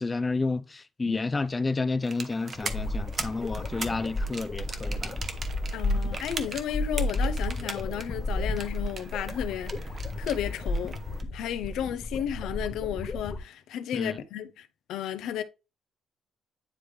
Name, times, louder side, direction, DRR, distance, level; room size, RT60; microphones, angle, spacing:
voice 1, 0.0-5.2 13.9-14.2, left 3 dB, 25° left, 0.4 m, -30 dB
sound 1, 2.0-11.2, right 4 dB, 40° right, 0.9 m, -40 dB
sound 2, 2.5-13.4, left 2 dB, 40° left, 0.9 m, -32 dB
voice 2, 5.7-9.8 10.2-11.0 11.3-15.4, left 10 dB, 85° left, 0.6 m, -33 dB
9.6 x 3.4 x 3.2 m
cardioid pair, 90°, 0 cm